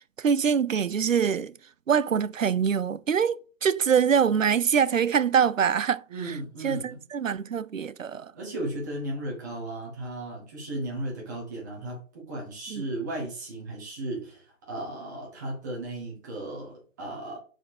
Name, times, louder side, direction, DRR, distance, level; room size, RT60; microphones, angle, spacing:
voice 1, 0.2-1.5 1.9-6.4 6.6-8.3 12.7-12.8, right 7 dB, 85° right, 0.5 m, -24 dB
voice 2, 6.1-7.0 8.3-17.4, right 1 dB, 15° right, 1.0 m, -35 dB
5.4 x 4.5 x 4.2 m
figure-of-eight pair, 150°, 38 cm